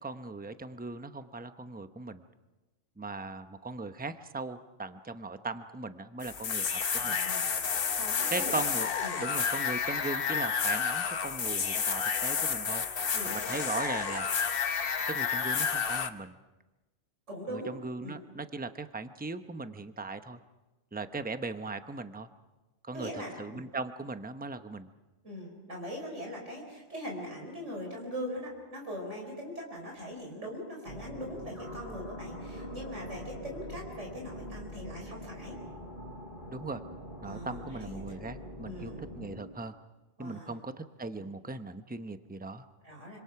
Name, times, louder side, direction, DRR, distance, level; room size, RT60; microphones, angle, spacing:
voice 1, 0.0-2.2 3.0-7.2 8.3-8.9 9.2-14.3 15.1-16.4 17.5-20.4 20.9-22.3 22.8-23.1 23.4-24.9 36.5-36.8 37.2-39.8 40.2-42.6, right 3 dB, 10° right, 9 dB, 0.8 m, -38 dB
sound 1, 6.2-16.1, left 6 dB, 50° left, 1.1 m, -30 dB
voice 2, 6.9-7.5 7.9-8.6 9.0-9.2 13.1-13.3 17.3-17.7 18.0-18.2 22.9-23.6 25.2-35.6 37.2-38.2 38.6-39.0 40.2-40.5 41.1-41.3 42.8-43.2, equal, 80° right, 0 dB, 4.9 m, -41 dB
sound 2, 30.9-39.4, equal, 30° left, 3.1 m, -43 dB
26.0 x 25.5 x 5.9 m, 1.1 s
omnidirectional pair, 1.2 m